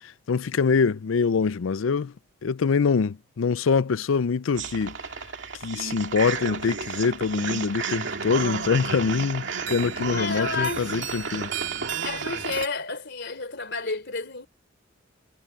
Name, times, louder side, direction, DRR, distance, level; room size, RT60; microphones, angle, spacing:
voice 1, 0.0-2.1 2.4-5.0 5.6-11.5, left 5 dB, 80° left, 0.5 m, -24 dB
sound 1, 4.6-12.7, right 5 dB, 65° right, 2.5 m, -32 dB
voice 2, 10.1-11.4 12.0-14.5, left 4 dB, 60° left, 3.6 m, -31 dB
head